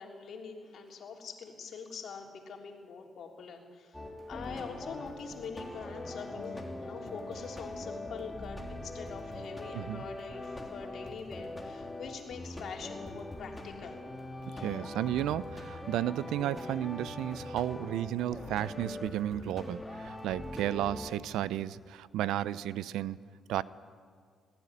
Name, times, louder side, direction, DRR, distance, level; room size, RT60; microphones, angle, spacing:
voice 1, 0.0-4.0 4.3-14.0 14.4-14.9, left 5 dB, 65° left, 1 dB, 3.5 m, -44 dB
sound 1, 3.9-21.1, left 2 dB, 10° left, 3.1 m, -42 dB
voice 2, 14.6-23.2 23.5-23.6, right 12 dB, 85° right, 17 dB, 0.6 m, -33 dB
20.0 x 15.0 x 9.9 m, 2.1 s
cardioid pair, 90°, 0 cm